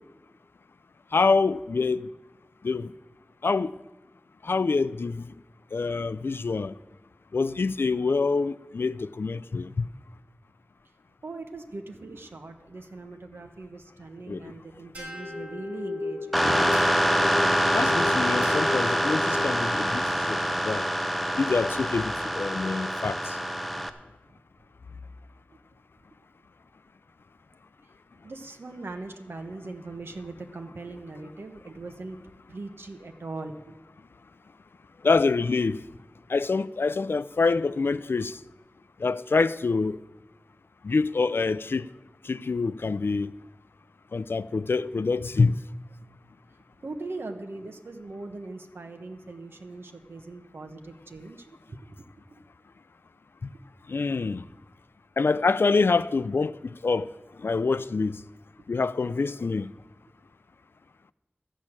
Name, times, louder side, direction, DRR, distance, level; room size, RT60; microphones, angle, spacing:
voice 1, 1.1-2.1 2.6-2.9 3.4-3.8 4.4-5.3 5.7-6.7 7.3-9.9 14.3-14.5 17.7-20.9 21.4-23.4 35.0-35.8 36.3-38.4 39.0-40.0 40.8-41.9 42.2-43.3 44.1-45.6 53.4-53.5 53.9-54.4 55.2-57.1 57.4-58.2 58.7-59.7, left 4 dB, 80° left, 0.4 m, -26 dB
voice 2, 11.2-16.4 28.2-32.2 32.5-33.8 46.8-52.0 53.5-53.6, right 3 dB, 90° right, 1.0 m, -40 dB
sound 1, 14.9-19.7, left 3 dB, 35° right, 5.6 m, -34 dB
sound 2, 16.3-23.9, equal, ahead, 0.9 m, -25 dB
13.5 x 6.3 x 8.7 m
wide cardioid pair, 60°, 4 cm